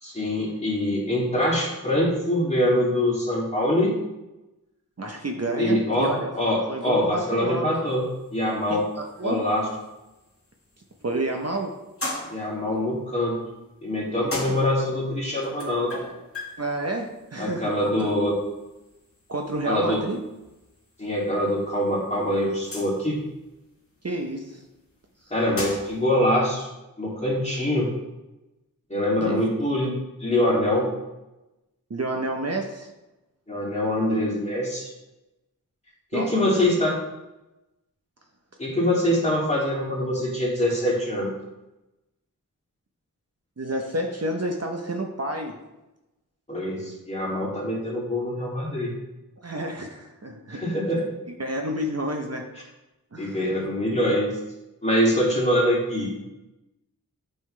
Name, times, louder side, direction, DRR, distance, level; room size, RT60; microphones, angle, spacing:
voice 1, 0.0-3.9 5.6-8.1 8.3-8.9 9.2-9.7 12.3-13.4 13.8-15.9 17.4-18.3 19.6-20.0 21.0-23.2 25.3-26.7 27.0-27.9 28.9-29.9 30.2-30.9 33.5-34.9 36.1-37.0 38.6-41.3 46.5-48.9 50.5-51.0 53.2-54.3 54.8-56.2, left 1 dB, 20° left, -4 dB, 2.5 m, -24 dB
voice 2, 5.0-6.3 6.7-7.8 8.7-9.5 11.0-11.8 14.2-14.6 16.6-18.1 19.3-20.2 24.0-24.6 29.3-29.6 31.9-32.9 36.1-36.6 43.6-45.6 49.4-50.6 51.4-52.5 53.1-53.4, right 1 dB, 45° right, 2 dB, 0.8 m, -30 dB
sound 1, 7.9-26.1, left 2 dB, 40° left, 1.9 m, -41 dB
9.0 x 5.6 x 3.2 m, 1.0 s
wide cardioid pair, 55°, 35 cm